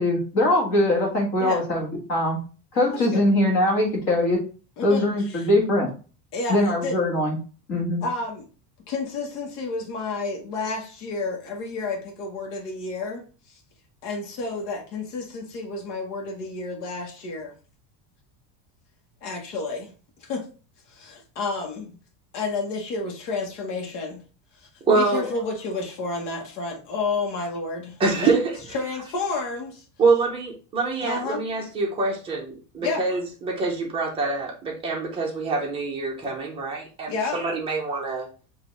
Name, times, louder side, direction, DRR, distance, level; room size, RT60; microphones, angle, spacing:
voice 1, 0.0-2.4 2.7-4.4 4.8-5.9 6.5-7.4 7.7-8.0, left 1 dB, 35° left, 0 dB, 1.5 m, -22 dB
voice 2, 4.8-5.5 6.3-7.0 8.0-8.4 8.9-13.6 14.0-17.5 19.2-19.9 20.2-20.5 20.9-22.0 22.3-24.2 24.6-28.0 28.2-28.4 28.7-29.8 31.0-31.4 32.8-33.0 37.1-37.4, left 3 dB, 65° left, 0 dB, 1.3 m, -30 dB
voice 3, 24.9-25.3 28.0-28.6 30.0-38.3, right 3 dB, 10° right, -2 dB, 0.7 m, -25 dB
5.1 x 2.8 x 3.2 m, 0.36 s
cardioid pair, 175°, 49 cm